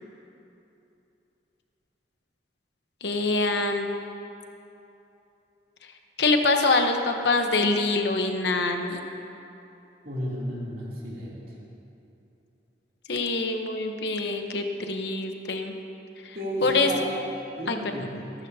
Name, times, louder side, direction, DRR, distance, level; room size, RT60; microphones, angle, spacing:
voice 1, 3.0-3.9 6.2-9.0 13.1-15.7 16.2-16.4 16.6-16.9 17.7-17.8, left 3 dB, 70° left, 4 dB, 1.0 m, -25 dB
voice 2, 10.0-11.4 16.3-17.1 17.6-18.2, equal, 50° right, -6 dB, 2.9 m, -32 dB
19.5 x 12.0 x 2.8 m, 2.9 s
head